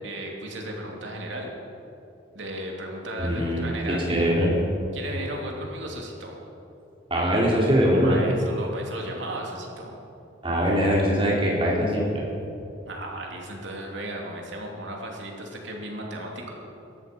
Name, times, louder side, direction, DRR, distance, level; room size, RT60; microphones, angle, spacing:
voice 1, 0.0-1.5 2.3-4.3 4.9-6.4 8.0-10.0 12.9-16.5, right 1 dB, 70° right, 0 dB, 2.9 m, -35 dB
voice 2, 3.2-3.7 4.1-4.5 7.1-8.2 10.4-12.1, equal, 30° right, -4 dB, 3.8 m, -22 dB
18.5 x 13.5 x 5.4 m, 2.8 s
head